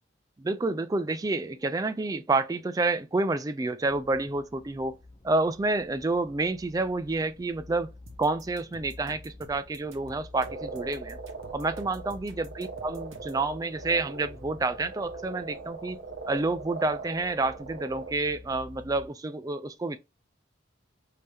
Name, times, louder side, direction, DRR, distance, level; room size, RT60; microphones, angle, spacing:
voice 1, 0.4-5.0 5.2-7.9 8.2-11.2 11.5-16.0 16.3-20.0, right 3 dB, 20° right, 0.3 m, -29 dB
sound 1, 3.8-19.1, left 2 dB, 25° left, 0.6 m, -50 dB
sound 2, 8.1-13.4, right 1 dB, 90° right, 1.1 m, -52 dB
Frog, 10.4-18.1, right 3 dB, 65° right, 0.9 m, -41 dB
5.2 x 2.8 x 3.4 m
head